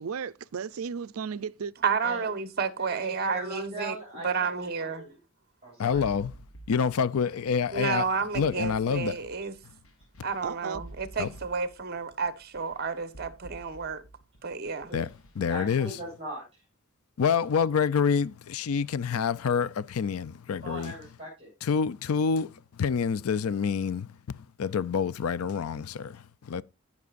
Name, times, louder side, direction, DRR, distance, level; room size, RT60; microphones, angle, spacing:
voice 1, 0.0-1.7 10.4-10.8, right 6 dB, 80° right, 0.5 m, -34 dB
voice 2, 1.8-4.0 4.2-5.0 7.7-9.5 10.2-14.0 14.4-14.9, right 5 dB, 45° right, 1.1 m, -31 dB
voice 3, 2.8-4.3 4.6-5.1 5.6-6.0 14.9-15.0 15.5-16.6 20.6-21.5, right 1 dB, 25° right, 6.2 m, -40 dB
voice 4, 5.8-6.3 6.7-8.1 8.3-9.2 11.2-11.3 14.9-15.1 15.4-15.9 17.2-20.9 21.6-26.6, left 6 dB, 90° left, 0.5 m, -27 dB
sound 1, 5.9-15.5, right 2 dB, 70° left, 1.3 m, -50 dB
17.5 x 6.0 x 2.5 m
head